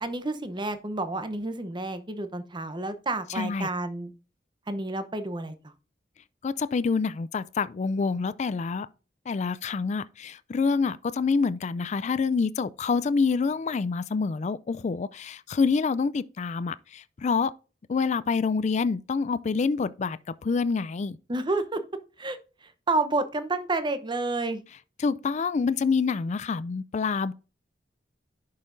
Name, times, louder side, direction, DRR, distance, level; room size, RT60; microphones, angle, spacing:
voice 1, 0.0-4.1 4.7-5.7 21.3-21.8 22.2-24.6, right 2 dB, 25° right, 0.8 m, -30 dB
voice 2, 3.4-3.7 6.4-8.9 9.3-17.5 17.9-21.2 25.0-27.3, left 5 dB, 40° left, 0.4 m, -27 dB
10.5 x 5.6 x 2.6 m
head